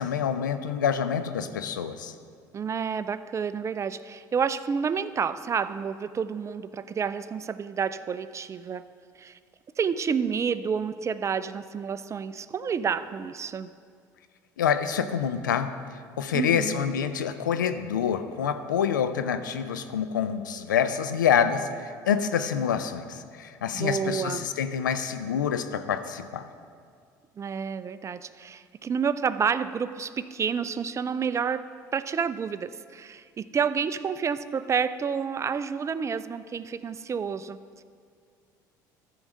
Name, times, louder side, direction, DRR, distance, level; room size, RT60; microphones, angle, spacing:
voice 1, 0.0-2.1 14.6-15.7 16.2-26.5, left 8 dB, 85° left, 10 dB, 0.5 m, -27 dB
voice 2, 2.5-8.8 9.2-9.4 9.8-13.7 16.3-16.8 23.7-24.5 27.4-37.6, right 6 dB, 30° right, 14 dB, 0.4 m, -29 dB
14.0 x 4.7 x 6.4 m, 2.1 s
hypercardioid pair, 65°, 10 cm